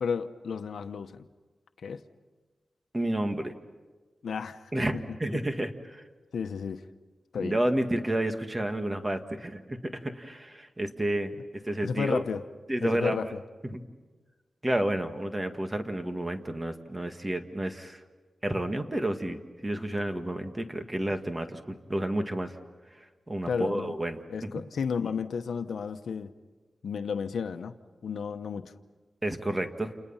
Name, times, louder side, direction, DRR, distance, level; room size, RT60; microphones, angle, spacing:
voice 1, 0.0-1.2 1.8-2.0 4.2-5.0 6.3-6.8 7.3-7.6 11.8-12.4 12.8-13.4 23.4-23.9 24.3-26.3 26.8-27.7 28.0-28.7, left 6 dB, 85° left, 9 dB, 0.9 m, -32 dB
voice 2, 2.9-3.5 4.7-6.0 7.4-12.2 12.7-13.2 13.7-13.8 14.6-18.0 18.4-22.6 23.0-24.6 29.2-29.9, right 1 dB, 20° right, 7 dB, 1.8 m, -31 dB
29.5 x 29.0 x 5.7 m, 1.3 s
wide cardioid pair, 85°, 0 cm